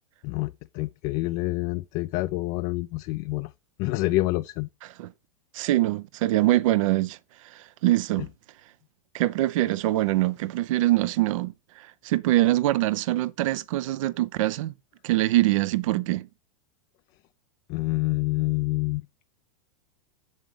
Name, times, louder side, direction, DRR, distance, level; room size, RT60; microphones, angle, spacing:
voice 1, 0.2-3.5 3.8-4.7 17.7-19.1, left 20 dB, 45° left, 0.4 m, -27 dB
voice 2, 5.5-7.2 7.4-8.3 9.1-14.7 15.0-16.3, right 16 dB, 65° right, 0.6 m, -24 dB
7.4 x 6.9 x 3.3 m
hypercardioid pair, 105°, 18 cm